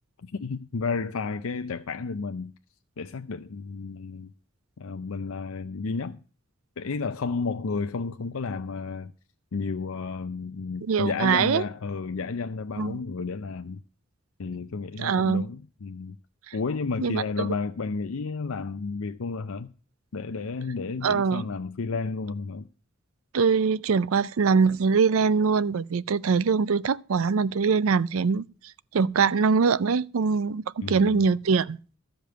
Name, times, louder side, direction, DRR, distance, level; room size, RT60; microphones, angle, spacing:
voice 1, 0.2-2.5 3.0-4.3 4.8-6.2 6.8-9.1 9.5-13.8 14.4-16.2 16.5-19.7 20.1-22.7 30.8-31.3, left 4 dB, 85° left, 0.6 m, -32 dB
voice 2, 10.9-11.6 12.8-13.0 15.0-15.4 16.5-16.6 17.0-17.5 21.0-21.4 23.3-28.4 28.9-31.8, right 5 dB, 85° right, 0.5 m, -23 dB
13.5 x 5.2 x 7.7 m
head